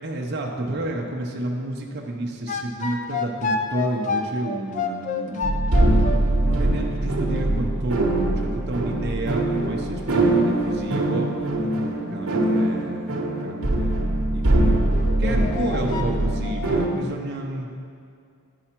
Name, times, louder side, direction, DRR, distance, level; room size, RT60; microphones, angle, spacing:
voice 1, 0.0-11.7 12.1-14.8 15.2-17.7, right 1 dB, 50° right, 0 dB, 0.7 m, -31 dB
sound 1, 2.5-6.2 7.3-7.4 14.9-16.9, left 4 dB, 35° left, 0.5 m, -29 dB
sound 2, 5.4-16.9, right 1 dB, 70° right, 1.0 m, -22 dB
10.0 x 4.8 x 4.4 m, 2.3 s
head